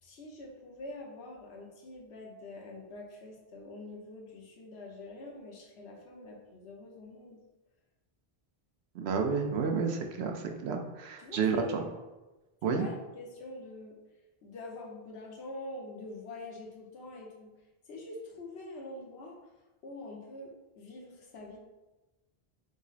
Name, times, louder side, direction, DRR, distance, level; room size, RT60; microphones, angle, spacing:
voice 1, 0.0-7.4 11.2-12.0 12.6-14.0 14.4-17.5 17.9-19.4 19.8-21.6, left 2 dB, 85° left, -1 dB, 1.1 m, -45 dB
voice 2, 8.9-11.8 12.6-12.9, right 5 dB, 85° right, 4 dB, 0.9 m, -30 dB
5.0 x 2.0 x 4.0 m, 1.1 s
omnidirectional pair, 1.1 m